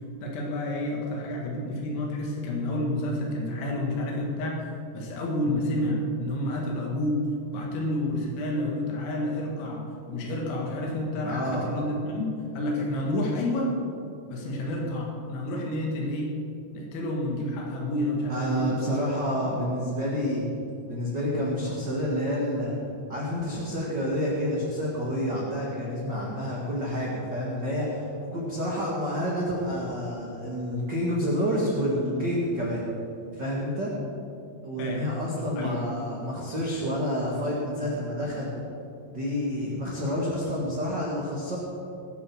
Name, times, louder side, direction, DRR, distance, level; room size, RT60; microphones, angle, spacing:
voice 1, 0.2-4.7 4.9-7.2 7.5-9.8 10.1-12.3 12.5-13.7 14.3-16.3 16.7-19.0 19.4-19.6 34.8-35.1 35.6-35.8, left 1 dB, 85° left, -1 dB, 4.2 m, -29 dB
voice 2, 11.2-11.7 18.3-20.4 20.9-22.7 23.1-28.0 28.3-32.8 33.3-33.9 34.6-38.5 39.1-41.6, equal, 40° right, -5 dB, 1.5 m, -29 dB
20.0 x 7.9 x 6.2 m, 2.5 s
omnidirectional pair, 5.3 m